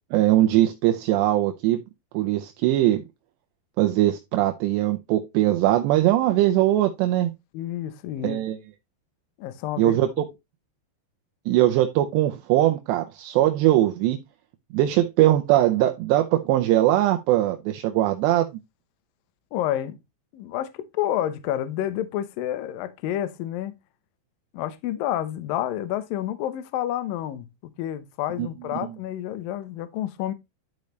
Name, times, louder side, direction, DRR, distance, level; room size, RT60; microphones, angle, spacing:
voice 1, 0.1-1.8 2.1-3.0 3.8-7.3 8.2-8.6 9.8-10.3 11.5-14.2 14.7-18.5 28.4-28.5 28.8-28.9, right 14 dB, 80° right, 2.8 m, -21 dB
voice 2, 7.5-8.4 9.4-9.9 19.5-20.0 20.3-23.8 24.5-30.3, left 12 dB, 80° left, 2.1 m, -29 dB
12.0 x 5.2 x 3.2 m
omnidirectional pair, 5.2 m